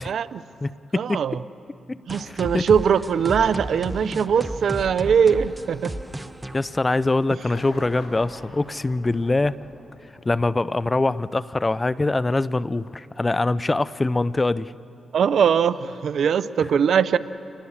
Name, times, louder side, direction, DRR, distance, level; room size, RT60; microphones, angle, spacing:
voice 1, 0.0-0.4 1.0-1.4 2.1-5.9 15.1-17.2, right 7 dB, 70° right, 15 dB, 0.7 m, -21 dB
voice 2, 0.6-1.2 1.9-2.0 2.5-2.7 6.5-9.5 10.2-14.7, left 2 dB, 25° left, 18 dB, 0.6 m, -23 dB
sound 1, 2.1-7.5, right 1 dB, 15° right, 0.9 m, -34 dB
sound 2, 7.4-10.5 11.6-11.7, left 2 dB, 65° left, 6.7 m, -44 dB
28.0 x 20.5 x 7.3 m, 2.8 s
supercardioid pair, 55°, 0 cm